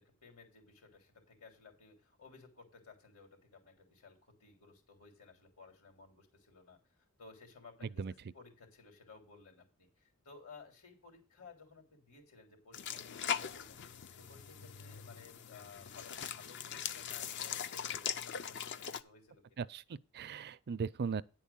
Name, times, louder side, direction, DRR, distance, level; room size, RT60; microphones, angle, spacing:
voice 1, 0.0-8.0 8.3-19.6, left 4 dB, 70° left, 3.4 m, -58 dB
voice 2, 7.8-8.1 19.6-21.2, right 5 dB, 45° right, 0.4 m, -38 dB
sound 1, 12.7-19.0, left 8 dB, 50° left, 0.5 m, -41 dB
10.0 x 4.6 x 7.1 m
head